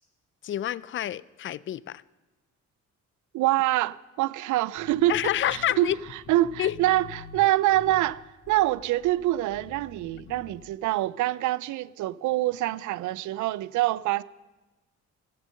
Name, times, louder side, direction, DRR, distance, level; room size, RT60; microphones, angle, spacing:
voice 1, 0.4-2.0 5.1-6.0 6.6-6.7, left 12 dB, 40° left, 0.4 m, -28 dB
voice 2, 3.3-5.2 5.5-5.9 6.3-14.2, right 15 dB, 75° right, 0.5 m, -25 dB
sound 1, 4.8-10.8, left 6 dB, 60° left, 2.8 m, -48 dB
15.5 x 7.7 x 6.4 m
cardioid pair, 90°, 30 cm